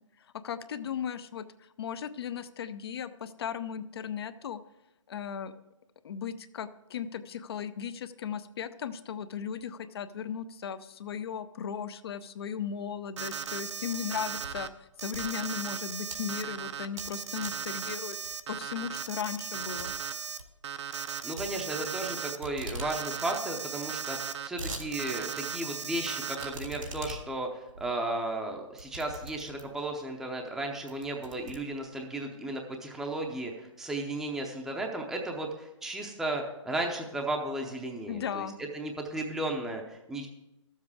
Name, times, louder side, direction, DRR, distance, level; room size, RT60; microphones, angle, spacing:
voice 1, 0.3-1.4 1.8-4.6 5.1-5.5 6.0-14.7 15.0-19.9 38.1-38.6, left 8 dB, 50° left, 12 dB, 0.6 m, -36 dB
Alarm, 13.2-14.7 15.0-20.4 20.6-22.4 22.8-24.5 24.9-26.6, right 7 dB, 60° right, 0.7 m, -37 dB
sound 1, 13.8-14.7 15.0-16.2 16.7-17.1 17.4-17.7 18.2-18.6 19.0-19.1 19.4-19.5 19.8-19.9 20.2-20.5 21.4-22.1 22.4-22.9 23.3-23.4 23.5-23.6 24.2-24.9 25.3-25.4 26.4-29.9 30.4-30.6 30.9-32.1, right 2 dB, 90° right, 2.1 m, -42 dB
voice 2, 21.2-38.5 38.7-40.3, right 2 dB, ahead, 1 dB, 0.7 m, -34 dB
13.0 x 7.4 x 4.8 m, 0.93 s
hypercardioid pair, 145°, 17 cm